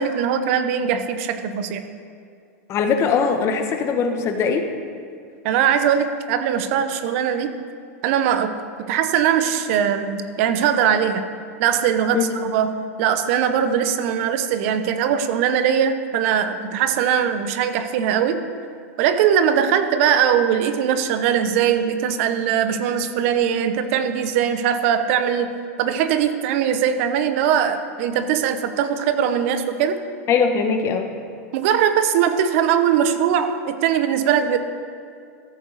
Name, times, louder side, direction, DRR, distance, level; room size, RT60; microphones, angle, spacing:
voice 1, 0.0-1.8 5.4-7.5 8.0-8.5 8.9-11.2 11.6-18.4 19.0-30.0 31.5-34.6, right 8 dB, 60° right, 10 dB, 0.8 m, -21 dB
voice 2, 2.7-4.6 12.1-12.3 30.3-31.1, left 6 dB, 35° left, 5 dB, 1.1 m, -20 dB
14.0 x 7.7 x 4.0 m, 2.3 s
supercardioid pair, 125°, 8 cm